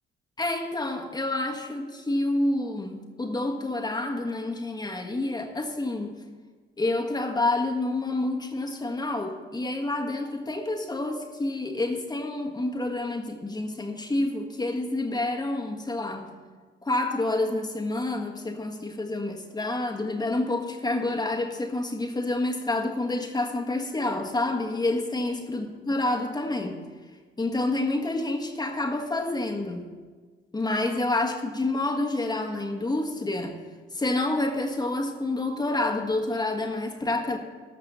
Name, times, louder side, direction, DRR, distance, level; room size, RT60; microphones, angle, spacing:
voice 1, 0.4-6.2 6.8-16.3 16.8-26.8 27.4-29.9 30.5-33.6 33.9-37.4, left 2 dB, 20° left, 3 dB, 1.6 m, -28 dB
13.5 x 5.8 x 6.9 m, 1.4 s
cardioid pair, 90°, 20 cm